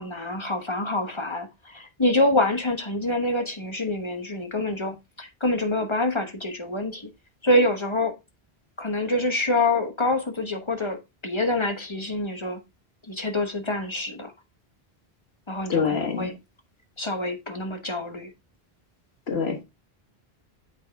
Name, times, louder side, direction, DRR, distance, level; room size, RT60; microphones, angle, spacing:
voice 1, 0.0-7.1 7.4-8.1 8.8-11.0 11.2-12.6 13.1-14.3 15.5-16.3 17.0-18.3, left 1 dB, 30° left, 1.1 m, -26 dB
voice 2, 15.7-16.3 19.3-19.6, left 6 dB, 85° left, 1.5 m, -25 dB
8.1 x 5.5 x 3.4 m
omnidirectional pair, 1.0 m